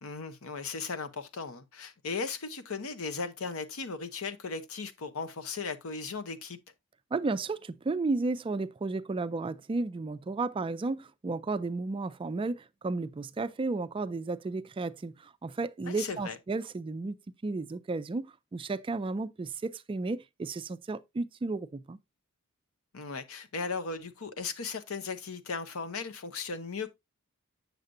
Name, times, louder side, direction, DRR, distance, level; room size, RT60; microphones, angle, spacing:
voice 1, 0.0-6.6 15.9-16.4 22.9-26.9, left 4 dB, 85° left, 0.9 m, -37 dB
voice 2, 7.1-17.2 17.4-18.3 18.5-22.0, right 3 dB, 25° right, 0.3 m, -33 dB
7.8 x 6.6 x 2.6 m
head